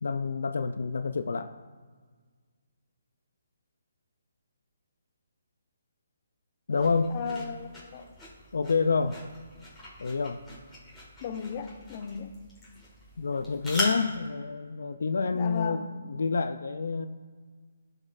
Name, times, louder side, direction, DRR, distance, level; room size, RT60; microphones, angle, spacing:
voice 1, 0.0-1.5 6.7-7.2 8.5-9.2 10.0-10.4 13.2-17.1, left 4 dB, 75° left, 8 dB, 0.4 m, -28 dB
sound 1, 6.7-14.3, left 2 dB, 5° left, 1.8 m, -40 dB
voice 2, 7.1-8.1 11.2-12.3 15.3-16.0, left 6 dB, 35° left, 6 dB, 0.6 m, -36 dB
11.0 x 4.3 x 2.5 m, 1.5 s
hypercardioid pair, 160°, 0 cm